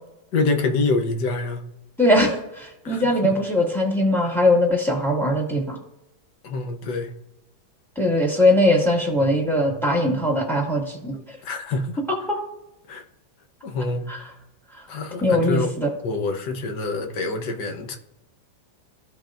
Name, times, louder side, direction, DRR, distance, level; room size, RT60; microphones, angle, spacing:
voice 1, 0.3-1.6 2.8-3.3 6.4-7.1 11.4-12.0 12.9-13.0 13.6-14.1 14.9-15.7 16.0-18.0, left 3 dB, 60° left, 5 dB, 1.4 m, -26 dB
voice 2, 2.0-5.8 8.0-11.1 12.3-12.4 14.1-14.2 15.2-15.9, left 1 dB, ahead, -1 dB, 1.9 m, -20 dB
14.5 x 5.2 x 2.5 m, 0.92 s
omnidirectional pair, 2.2 m